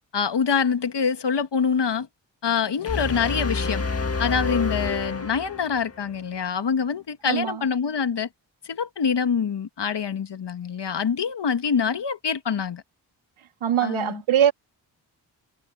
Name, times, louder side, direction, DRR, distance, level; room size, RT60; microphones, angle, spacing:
voice 1, 0.1-2.1 2.4-3.9 4.2-8.3 8.7-12.8 13.8-14.2, left 6 dB, 60° left, 1.7 m, -25 dB
sound 1, 2.9-6.1, left 4 dB, 30° left, 1.8 m, -28 dB
voice 2, 7.2-7.7 13.6-14.5, right 10 dB, 90° right, 3.1 m, -22 dB
supercardioid pair, 45°, 48 cm